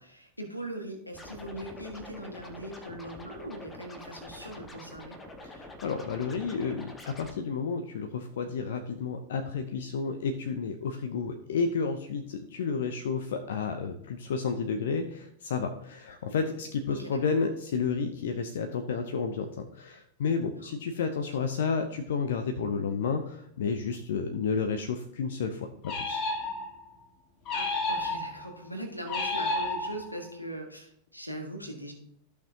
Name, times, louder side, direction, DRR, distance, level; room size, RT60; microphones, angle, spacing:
voice 1, 0.0-5.2 16.2-16.6 16.9-17.2 21.4-21.5 27.5-31.9, right 1 dB, 90° left, 4 dB, 1.6 m, -40 dB
Scratching (performance technique), 1.1-7.3, left 2 dB, 15° left, 1.4 m, -46 dB
voice 2, 5.4-26.2, left 5 dB, 60° left, 6 dB, 0.7 m, -31 dB
sound 1, 25.8-26.9 27.5-28.5 29.1-30.3, left 2 dB, 35° left, 1.8 m, -31 dB
14.0 x 5.9 x 2.8 m, 0.71 s
figure-of-eight pair, 90°, 0 cm